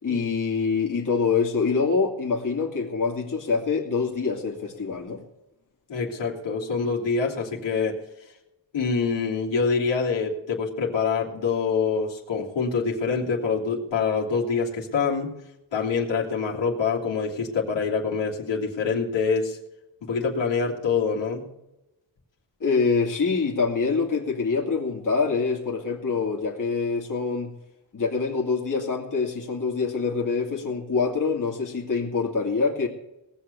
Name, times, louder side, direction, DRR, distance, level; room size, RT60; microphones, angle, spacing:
voice 1, 0.0-5.2 22.6-27.5 27.9-32.9, left 5 dB, 45° left, -1 dB, 2.8 m, -25 dB
voice 2, 5.9-8.0 8.7-15.3 15.7-19.6 20.0-21.4, left 5 dB, 70° left, -3 dB, 3.1 m, -25 dB
19.0 x 6.9 x 7.0 m, 0.93 s
cardioid pair, 80°, 44 cm